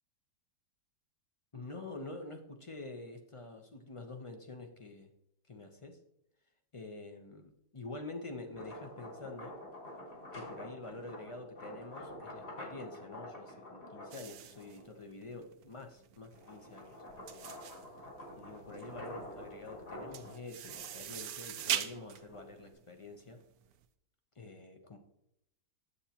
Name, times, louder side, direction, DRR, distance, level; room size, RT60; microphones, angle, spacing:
voice 1, 1.5-5.1 5.5-6.0 6.7-9.5 10.3-17.0 17.3-17.7 18.4-23.4 24.4-25.0, left 2 dB, 40° left, 4 dB, 0.4 m, -47 dB
sound 1, 8.4-15.0 15.5-22.7, left 1 dB, 70° left, 4.1 m, -48 dB
sound 2, 14.1-23.7, right 10 dB, 70° right, 1.0 m, -41 dB
9.7 x 8.1 x 2.9 m, 0.79 s
omnidirectional pair, 1.8 m